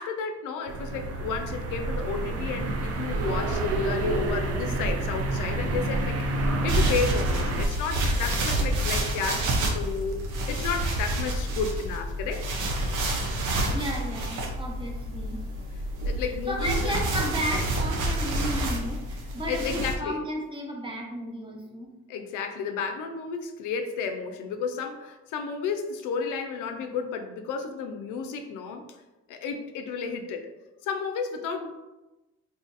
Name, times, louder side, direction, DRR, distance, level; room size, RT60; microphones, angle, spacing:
voice 1, 0.0-12.6 15.7-17.0 19.5-20.2 22.1-28.9 29.3-30.5 30.8-31.7, left 5 dB, 90° left, 5 dB, 0.5 m, -32 dB
sound 1, 0.7-7.7, right 2 dB, 55° right, 0.5 m, -28 dB
sound 2, 6.7-19.9, right 1 dB, 90° right, 0.7 m, -28 dB
voice 2, 13.6-15.4 16.2-21.9, equal, 15° right, -1 dB, 0.8 m, -34 dB
2.7 x 2.5 x 3.9 m, 1.1 s
cardioid pair, 90°, 30 cm